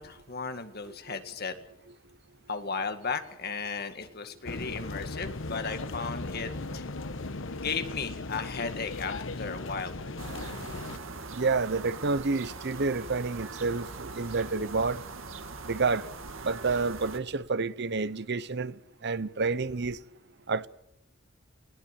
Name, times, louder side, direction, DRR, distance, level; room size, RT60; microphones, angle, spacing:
voice 1, 0.0-1.6 2.5-6.9 7.5-10.0, left 5 dB, 50° left, 2.0 m, -35 dB
sound 1, 4.4-11.0, left 2 dB, 65° left, 1.2 m, -37 dB
sound 2, 10.2-17.2, right 3 dB, 75° right, 2.2 m, -41 dB
voice 2, 11.3-15.0 15.7-16.1 16.4-18.7 19.0-20.0 20.5-20.7, right 4 dB, 55° right, 0.8 m, -29 dB
20.5 x 18.0 x 8.4 m
head